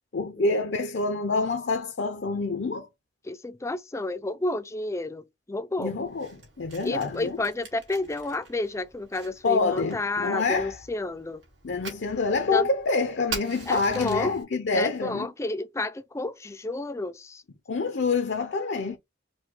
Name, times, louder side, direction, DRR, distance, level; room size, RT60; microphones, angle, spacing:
voice 1, 0.1-2.9 5.8-7.4 9.4-10.8 11.6-15.3 17.7-19.0, left 3 dB, 65° left, 0.6 m, -27 dB
voice 2, 3.2-5.9 6.8-11.4 12.5-12.7 13.7-14.3 14.7-17.4, left 2 dB, 15° left, 0.4 m, -31 dB
Fire, 6.0-14.4, right 4 dB, 80° right, 2.2 m, -44 dB
4.7 x 2.2 x 3.7 m
head